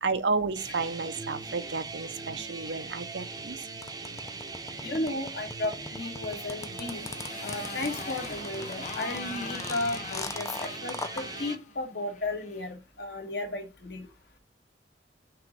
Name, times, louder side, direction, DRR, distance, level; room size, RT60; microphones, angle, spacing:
voice 1, 0.0-3.6, right 4 dB, 85° right, 0.7 m, -31 dB
sound 1, 0.6-11.6, right 3 dB, 20° right, 0.6 m, -40 dB
sound 2, 3.8-11.2, left 3 dB, 20° left, 0.4 m, -39 dB
voice 2, 4.8-7.1 7.4-14.1, left 2 dB, 65° left, 1.6 m, -34 dB
Motorcycle, 6.3-12.7, left 4 dB, 40° left, 0.7 m, -42 dB
5.8 x 3.1 x 5.2 m
head